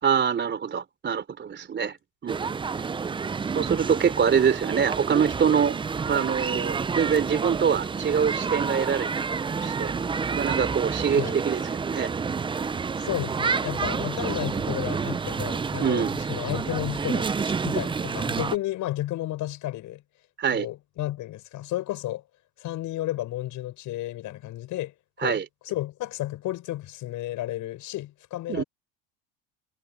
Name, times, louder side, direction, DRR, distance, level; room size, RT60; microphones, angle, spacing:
voice 1, 0.0-2.0 2.2-2.5 3.5-5.8 6.1-9.2 9.6-9.9 10.3-12.1 15.8-16.1 20.4-20.7 25.2-25.5 28.5-28.6, right 7 dB, 30° right, 3.5 m, -24 dB
City Playground (Boxhagenerplatz Berlin), 2.3-18.6, right 5 dB, 15° right, 0.5 m, -29 dB
voice 2, 13.0-20.0 20.5-22.2 22.6-28.6, left 15 dB, 55° left, 6.0 m, -32 dB
supercardioid pair, 105°, 36 cm